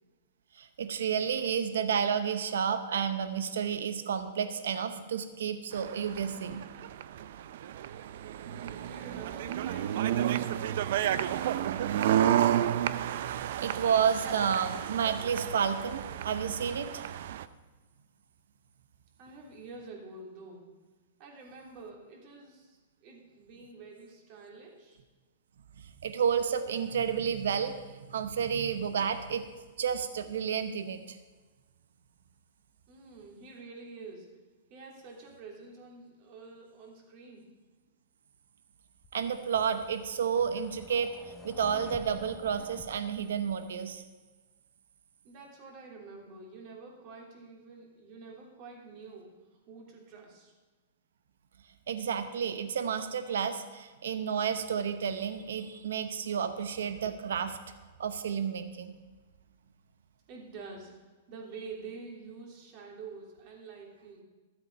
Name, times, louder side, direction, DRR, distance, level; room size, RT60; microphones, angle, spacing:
voice 1, 0.5-6.6 13.3-17.0 26.0-29.4 29.8-31.2 39.1-41.1 41.4-44.0 51.9-57.6 58.0-58.9, right 7 dB, 80° right, 10 dB, 0.8 m, -31 dB
sound 1, 5.7-17.4, right 11 dB, 65° right, 0.5 m, -31 dB
voice 2, 8.4-12.5 19.2-20.7 21.2-25.0 32.9-34.3 34.7-37.5 45.2-50.5 60.3-60.9 61.3-64.2, right 4 dB, 45° right, 0 dB, 3.1 m, -48 dB
sound 2, 39.0-44.0, left 4 dB, 20° left, 0.8 m, -51 dB
13.5 x 7.9 x 5.4 m, 1.3 s
hypercardioid pair, 135°, 0 cm